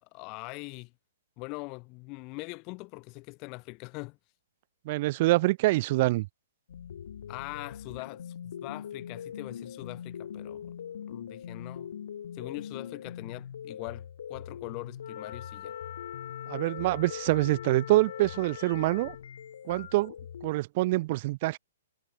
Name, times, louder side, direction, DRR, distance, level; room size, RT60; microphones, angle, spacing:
voice 1, 0.0-0.9 1.4-4.2 7.3-10.7 11.1-11.9 12.3-14.0 14.3-15.7, left 29 dB, 20° left, 3.0 m, -42 dB
voice 2, 4.9-6.3 16.5-19.1 19.7-20.1 20.4-21.6, right 19 dB, 30° right, 0.5 m, -25 dB
sound 1, 6.7-20.5, left 8 dB, 60° left, 7.8 m, -42 dB
Wind instrument woodwind instrument, 15.0-19.3, left 11 dB, 45° left, 1.2 m, -43 dB
hypercardioid pair, 175°, 0 cm